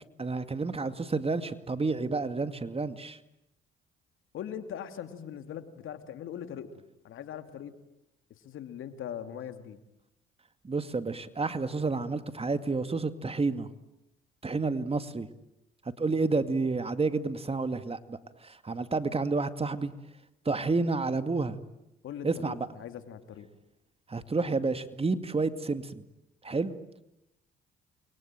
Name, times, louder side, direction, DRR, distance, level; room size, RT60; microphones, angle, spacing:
voice 1, 0.2-3.2 10.6-13.7 14.4-15.3 16.0-19.9 20.5-21.6 22.2-22.7 24.1-25.9 26.4-26.8, right 3 dB, 25° right, 11 dB, 2.2 m, -30 dB
voice 2, 4.3-6.7 7.0-7.7 8.4-9.8 22.0-23.5, left 9 dB, 70° left, 9 dB, 2.7 m, -40 dB
29.0 x 22.5 x 9.0 m, 0.87 s
supercardioid pair, 65°, 21 cm